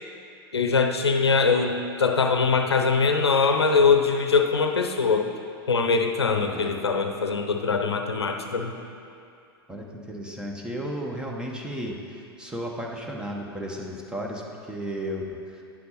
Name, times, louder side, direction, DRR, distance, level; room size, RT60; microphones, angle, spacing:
voice 1, 0.5-5.3 5.7-8.7, left 4 dB, 80° left, 5 dB, 0.7 m, -22 dB
voice 2, 6.4-6.8 9.7-15.2 15.5-15.6, equal, 5° right, 0 dB, 1.2 m, -34 dB
10.0 x 8.3 x 4.3 m, 2.5 s
figure-of-eight pair, 95°, 13 cm